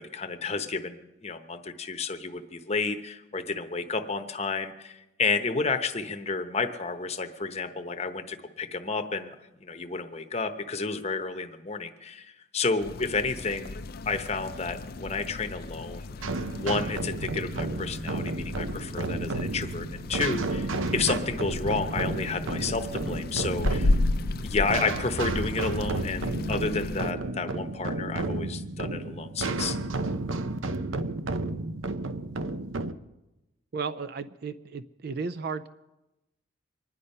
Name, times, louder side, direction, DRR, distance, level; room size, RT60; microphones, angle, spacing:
voice 1, 0.0-9.3 9.6-16.1 16.6-24.0 24.4-29.8, left 4 dB, 35° left, 8 dB, 0.9 m, -31 dB
sound 1, 12.8-27.1, left 2 dB, 50° left, 0.5 m, -34 dB
sound 2, 16.2-32.9, right 2 dB, 85° right, 0.8 m, -32 dB
voice 2, 33.7-35.7, right 5 dB, 50° right, 12 dB, 0.5 m, -34 dB
24.5 x 10.5 x 5.4 m, 0.97 s
head